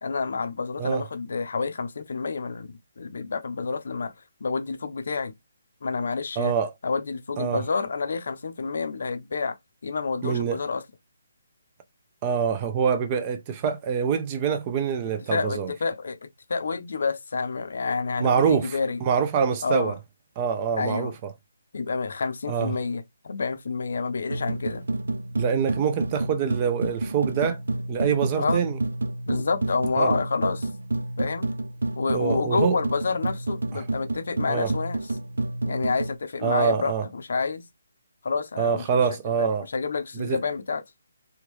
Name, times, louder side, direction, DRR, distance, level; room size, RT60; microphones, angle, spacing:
voice 1, 0.0-4.1 4.4-5.3 5.8-6.5 6.8-9.6 9.8-10.8 15.3-16.2 16.5-19.0 19.6-20.0 20.8-21.1 21.7-24.8 28.4-28.6 29.3-30.7 31.2-31.5 32.0-35.0 35.7-37.7 38.2-38.8 39.3-39.5 39.7-40.8, left 4 dB, 70° left, 0.6 m, -28 dB
voice 2, 6.4-6.7 7.4-7.6 10.2-10.6 12.2-15.7 18.2-20.0 20.4-21.3 22.5-22.7 25.4-27.6 27.9-28.8 30.0-30.1 32.1-32.8 33.7-33.8 34.5-34.7 36.4-37.0 38.6-39.7 40.2-40.4, right 7 dB, 30° right, 0.5 m, -25 dB
sound 1, 24.3-36.2, right 2 dB, 85° right, 0.3 m, -30 dB
3.5 x 2.3 x 3.0 m
hypercardioid pair, 155°, 0 cm